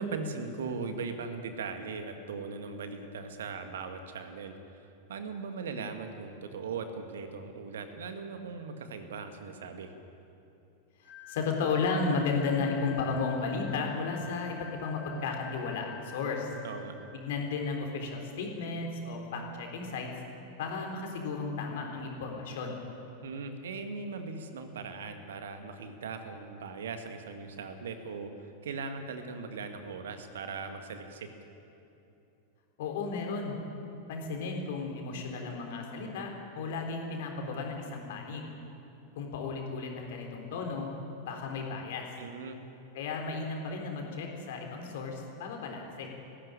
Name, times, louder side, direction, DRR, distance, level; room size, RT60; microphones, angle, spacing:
voice 1, 0.0-4.6 5.1-9.9 16.6-16.9 23.2-31.3 42.2-42.6, right 4 dB, 60° right, 7 dB, 1.9 m, -39 dB
sound 1, 11.0-17.1, left 7 dB, 75° left, 6.6 m, -49 dB
voice 2, 11.0-16.5 17.1-20.1 20.6-22.8 32.8-33.6 34.1-38.5 39.2-40.9 41.2-42.1 42.9-46.1, left 4 dB, 55° left, 2 dB, 3.8 m, -34 dB
19.0 x 15.5 x 9.9 m, 2.9 s
figure-of-eight pair, 90°, 0 cm